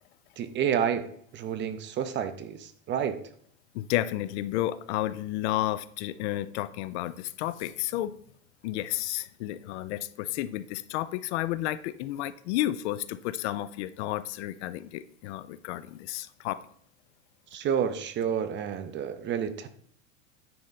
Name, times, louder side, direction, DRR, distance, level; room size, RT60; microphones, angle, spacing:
voice 1, 0.4-3.2 17.5-19.7, right 8 dB, 30° right, 11 dB, 0.7 m, -30 dB
voice 2, 3.7-8.2 8.6-16.6, left 14 dB, 60° left, 15 dB, 0.6 m, -31 dB
9.4 x 4.3 x 4.1 m, 0.64 s
supercardioid pair, 120°, 38 cm